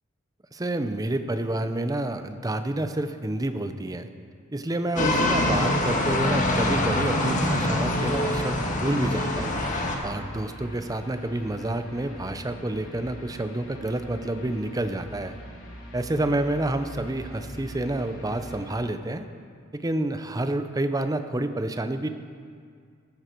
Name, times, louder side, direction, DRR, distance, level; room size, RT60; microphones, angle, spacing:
voice 1, 0.5-4.1 4.5-9.6 10.0-15.4 15.9-19.2 19.7-22.1, right 1 dB, 20° right, 9 dB, 0.6 m, -28 dB
sound 1, 5.0-10.0, left 1 dB, 40° left, 1.6 m, -24 dB
sound 2, 5.2-18.8, equal, 70° left, 3.1 m, -42 dB
14.0 x 13.0 x 4.5 m, 2.2 s
head